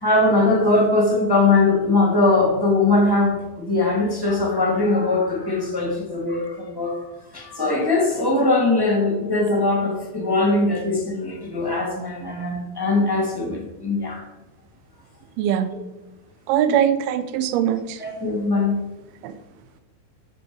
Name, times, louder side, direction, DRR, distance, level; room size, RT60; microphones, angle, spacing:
voice 1, 0.0-7.0 7.3-14.2 16.7-16.8 18.0-18.7, left 2 dB, 10° left, 0 dB, 1.4 m, -21 dB
voice 2, 15.4-15.7 16.5-18.0 19.2-19.3, right 9 dB, 80° right, 11 dB, 2.6 m, -21 dB
13.5 x 6.2 x 4.7 m, 1.1 s
omnidirectional pair, 4.5 m